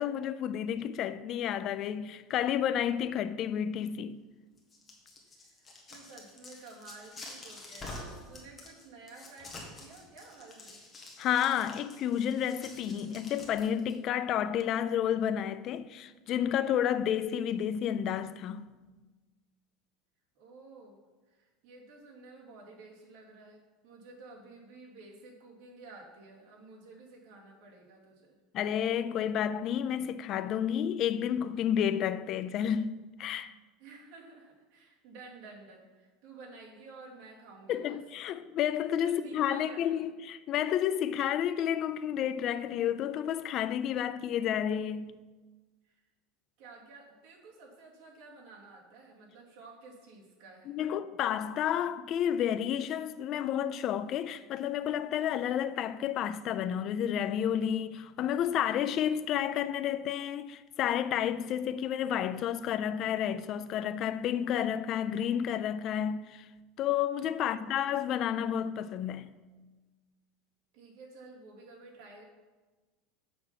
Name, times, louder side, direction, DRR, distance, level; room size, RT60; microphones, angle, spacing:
voice 1, 0.0-4.2 11.2-18.7 28.5-33.5 37.7-45.1 50.7-66.5 66.8-69.4, left 9 dB, 35° left, 0.3 m, -31 dB
sound 1, 4.6-13.9, left 2 dB, 15° left, 1.7 m, -48 dB
voice 2, 5.1-10.8 20.3-21.0 21.3-28.4 33.8-38.0 39.0-40.1 45.8-46.0 46.6-50.8 67.4-67.8 70.7-72.2, right 3 dB, 60° right, 2.6 m, -52 dB
7.6 x 6.8 x 5.8 m
supercardioid pair, 165°, 0 cm